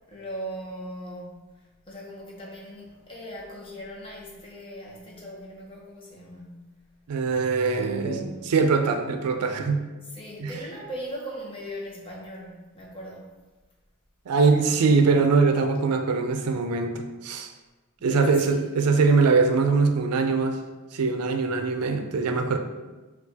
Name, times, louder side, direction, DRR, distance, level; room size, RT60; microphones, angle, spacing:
voice 1, 0.1-6.8 7.9-8.5 10.0-13.4 14.5-15.0 18.1-18.7, equal, 25° left, -3 dB, 0.8 m, -39 dB
voice 2, 7.1-8.2 8.5-9.8 10.4-10.5 14.3-17.5 18.0-20.6 20.9-22.6, right 4 dB, 85° right, 6 dB, 0.4 m, -22 dB
5.9 x 2.4 x 2.7 m, 1.2 s
head